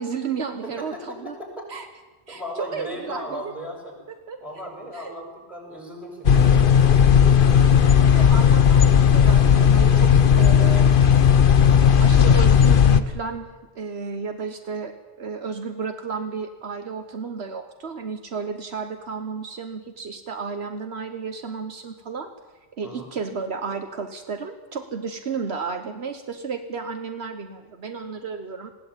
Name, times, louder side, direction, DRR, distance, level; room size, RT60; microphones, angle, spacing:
voice 1, 0.0-1.4 1.7-1.9 2.3-3.5 4.1-5.1 7.5-7.7 7.9-10.9 12.0-13.5 13.7-22.3 22.7-28.7, right 5 dB, 70° right, 7 dB, 1.4 m, -33 dB
voice 2, 0.6-1.6 2.3-4.0 4.4-6.6 22.8-23.1, equal, ahead, 0 dB, 6.8 m, -36 dB
sound 1, 6.2-13.0, left 8 dB, 55° left, 1.0 m, -15 dB
20.5 x 16.5 x 9.0 m, 1.2 s
omnidirectional pair, 1.1 m